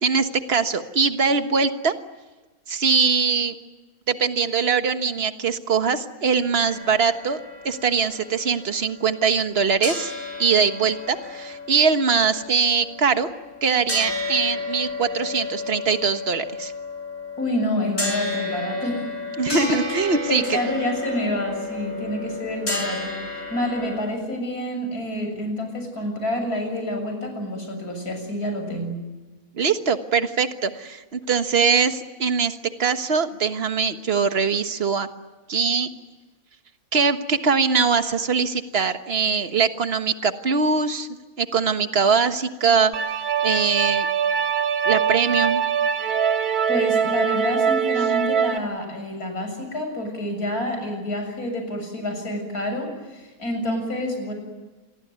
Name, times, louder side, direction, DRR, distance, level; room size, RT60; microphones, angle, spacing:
voice 1, 0.0-1.9 2.7-3.5 4.1-7.4 7.6-10.1 10.4-13.3 13.6-16.7 19.4-20.6 29.6-35.1 35.5-35.9 36.9-41.1 41.4-42.9 43.4-44.1 44.8-45.6, right 5 dB, 45° right, 8 dB, 1.6 m, -22 dB
sound 1, 6.6-9.5 9.8-24.0, left 2 dB, 45° left, 6.7 m, -32 dB
voice 2, 17.4-19.1 19.5-19.8 20.3-29.0 46.7-54.3, left 1 dB, 80° left, 4 dB, 7.7 m, -28 dB
sound 2, 42.9-48.6, right 7 dB, 85° right, 1.7 m, -22 dB
28.0 x 22.5 x 9.5 m, 1.2 s
omnidirectional pair, 1.6 m